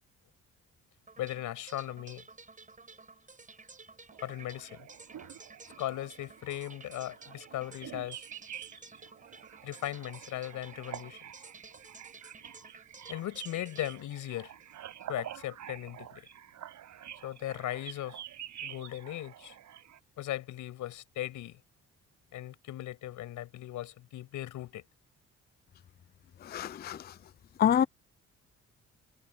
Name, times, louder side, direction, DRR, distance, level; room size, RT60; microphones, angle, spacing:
sound 1, 1.1-15.2, right 4 dB, 25° right, 7.1 m, -53 dB
voice 1, 1.2-2.2 4.2-4.9 5.8-8.2 9.6-11.2 13.1-14.5 15.1-16.2 17.2-18.2 18.6-19.6 20.2-21.6 22.3-24.8, left 14 dB, 85° left, 6.4 m, -38 dB
sound 2, 4.1-20.0, right 11 dB, 75° right, 5.0 m, -48 dB
voice 2, 26.4-27.1 27.6-27.8, left 9 dB, 35° left, 0.4 m, -27 dB
cardioid pair, 90°, 30 cm